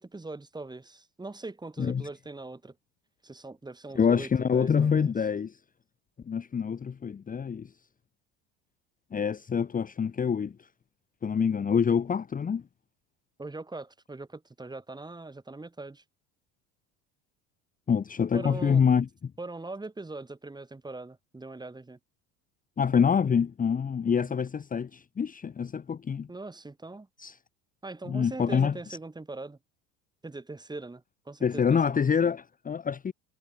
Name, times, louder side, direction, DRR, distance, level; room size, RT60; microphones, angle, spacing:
voice 1, 0.0-2.7 3.2-5.1 13.4-16.0 18.3-18.8 19.4-22.0 24.1-24.4 26.3-27.1 27.8-29.6 30.2-31.9 32.2-32.3, right 2 dB, 10° right, 3.1 m, -41 dB
voice 2, 3.9-5.6 6.3-7.7 9.1-10.6 11.2-12.6 17.9-19.3 22.8-26.3 27.2-27.4 28.1-28.8 31.4-33.1, left 6 dB, 25° left, 1.2 m, -26 dB
hypercardioid pair, 85°, 34 cm